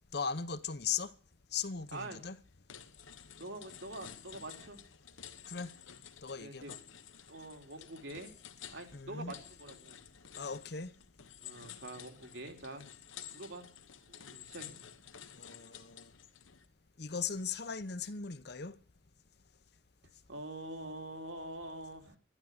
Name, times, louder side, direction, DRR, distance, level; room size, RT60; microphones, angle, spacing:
voice 1, 0.1-1.1 1.5-2.4 5.5-5.7 6.2-6.8 8.9-9.3 10.4-10.9 15.3-16.1 17.0-18.8, left 6 dB, 50° left, 0.9 m, -38 dB
sound 1, 2.1-2.3 2.7-16.7, left 9 dB, 75° left, 1.2 m, -52 dB
voice 2, 3.4-4.8 6.4-6.7 7.3-8.3 8.7-10.0 11.4-12.8 13.3-13.7 14.1-14.8 20.0-22.2, right 2 dB, 65° right, 3.5 m, -45 dB
12.5 x 12.0 x 9.4 m
head